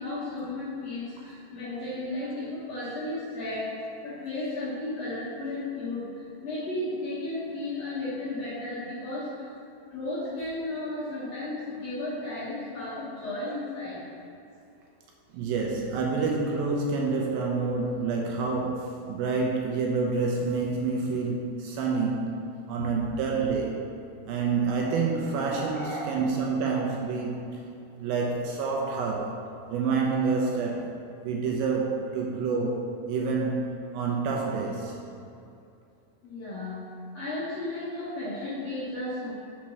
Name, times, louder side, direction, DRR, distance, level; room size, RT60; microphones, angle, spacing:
voice 1, 0.0-9.5 9.9-14.0 22.8-22.9 25.5-26.2 36.2-36.8 37.1-39.3, left 2 dB, 60° left, -10 dB, 1.8 m, -34 dB
voice 2, 15.3-22.4 22.7-23.8 24.3-27.4 28.0-29.4 29.7-30.9 31.2-33.6 33.9-34.9, right 4 dB, 80° right, -1 dB, 2.3 m, -28 dB
6.2 x 4.3 x 5.9 m, 2.6 s
omnidirectional pair, 4.5 m